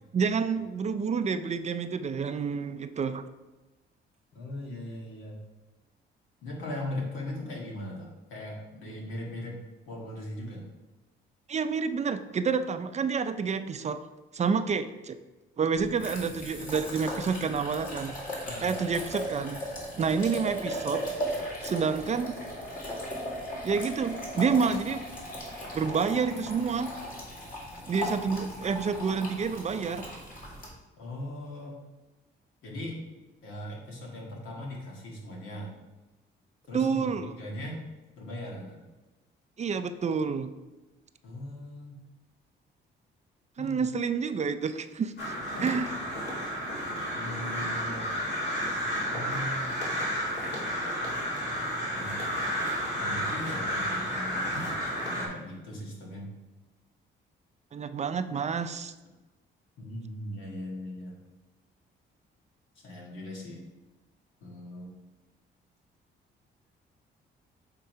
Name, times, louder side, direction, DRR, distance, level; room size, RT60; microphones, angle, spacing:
voice 1, 0.1-3.3 11.5-14.0 14.3-15.2 15.6-18.1 18.6-19.6 20.0-21.1 21.6-22.4 23.6-25.1 25.7-26.9 27.9-30.1 36.7-37.4 39.6-40.5 43.6-45.3 45.6-45.9 57.7-58.9, right 5 dB, 35° right, 10 dB, 0.4 m, -29 dB
voice 2, 4.3-5.4 6.4-9.6 9.9-10.7 18.4-18.7 31.0-31.8 32.6-33.0 33.4-35.7 36.7-37.8 38.2-38.8 41.2-42.0 43.6-43.8 45.5-45.7 47.1-48.1 49.1-49.8 52.0-52.2 52.9-54.5 55.2-56.3 59.8-61.2 62.8-63.6 64.4-64.9, left 1 dB, 80° left, -2 dB, 1.9 m, -39 dB
sound 1, 15.7-30.7, equal, 45° left, 2.3 m, -37 dB
Crow, 45.2-55.3, equal, 60° left, 2.2 m, -31 dB
6.9 x 3.7 x 4.5 m, 1.1 s
cardioid pair, 90°, 20 cm